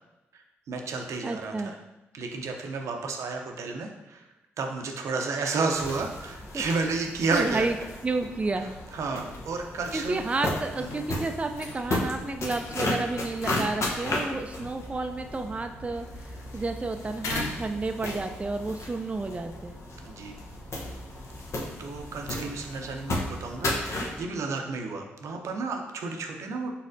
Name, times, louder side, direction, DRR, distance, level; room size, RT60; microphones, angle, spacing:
voice 1, 0.3-1.8 2.1-4.3 4.6-7.7 8.6-10.3 10.8-10.9 20.0-20.3 21.8-26.7, right 4 dB, 70° right, 3 dB, 0.6 m, -32 dB
voice 2, 1.2-1.7 6.5-6.6 7.3-7.7 8.0-8.7 9.9-19.8, right 3 dB, 25° right, 6 dB, 0.4 m, -31 dB
sound 1, 5.7-24.2, left 1 dB, 65° left, 0.8 m, -35 dB
sound 2, 10.8-18.3, left 2 dB, 85° left, 0.5 m, -42 dB
4.1 x 4.0 x 2.6 m, 1.0 s
supercardioid pair, 45°, 5 cm